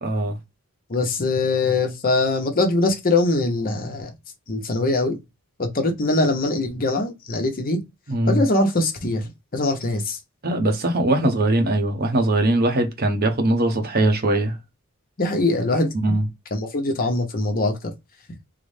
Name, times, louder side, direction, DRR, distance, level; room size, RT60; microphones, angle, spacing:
voice 1, 0.0-0.4 8.1-8.4 10.4-14.5 15.9-16.2, right 1 dB, 45° right, 0.7 m, -21 dB
voice 2, 0.9-4.1 4.5-5.2 5.6-7.8 8.3-10.2 15.2-15.9 16.5-17.8, left 2 dB, 40° left, 0.8 m, -22 dB
3.8 x 2.1 x 3.2 m
head